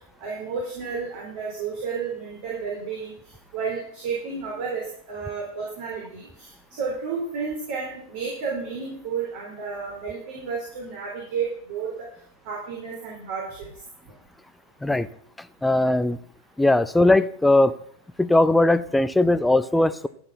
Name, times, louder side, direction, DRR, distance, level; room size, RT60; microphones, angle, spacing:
voice 1, 0.2-3.1 3.5-6.5 6.8-11.9 12.4-13.7, right 5 dB, 50° right, -3 dB, 3.7 m, -31 dB
voice 2, 15.6-16.2 16.6-17.7 18.2-20.1, left 2 dB, 5° left, 15 dB, 0.5 m, -19 dB
12.5 x 6.9 x 5.9 m, 0.65 s
figure-of-eight pair, 90°, 0 cm